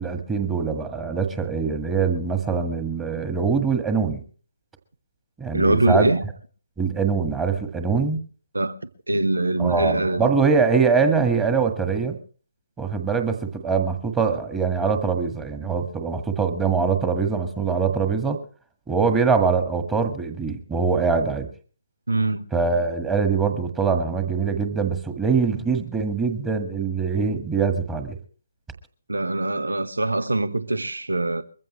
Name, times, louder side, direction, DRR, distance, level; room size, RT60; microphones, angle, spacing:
voice 1, 0.0-4.2 5.4-6.1 6.8-8.2 9.6-12.2 12.8-18.4 18.9-21.5 22.5-28.2, right 5 dB, 10° right, 1.7 m, -23 dB
voice 2, 5.5-6.2 8.5-8.8 9.1-10.3 22.1-22.4 29.1-31.4, right 2 dB, 70° right, 1.1 m, -23 dB
22.5 x 15.0 x 3.2 m
figure-of-eight pair, 140°, 0 cm